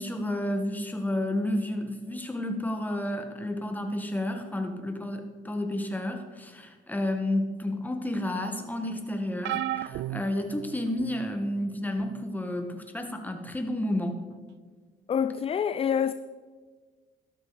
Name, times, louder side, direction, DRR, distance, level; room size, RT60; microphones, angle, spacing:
voice 1, 0.0-14.2, left 1 dB, 10° left, 1.6 m, -31 dB
sound 1, 9.4-11.2 12.0-12.2 13.5-13.6, right 13 dB, 85° right, 0.4 m, -34 dB
voice 2, 15.1-16.1, left 8 dB, 30° left, 0.4 m, -26 dB
13.0 x 12.5 x 4.1 m
cardioid pair, 95°, 18 cm